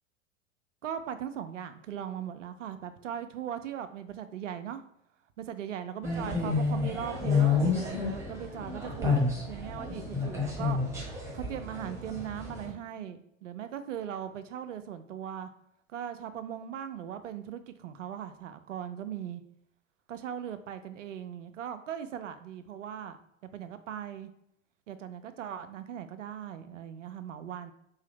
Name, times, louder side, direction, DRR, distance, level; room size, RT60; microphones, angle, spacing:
voice 1, 0.8-4.8 5.4-10.8 11.3-15.5 15.9-19.4 20.1-23.2 23.5-24.3 24.9-27.7, right 9 dB, 70° right, 10 dB, 0.5 m, -39 dB
sound 1, 6.0-12.7, left 4 dB, 5° right, 1.1 m, -30 dB
3.8 x 2.7 x 3.4 m, 0.77 s
figure-of-eight pair, 90°, 39 cm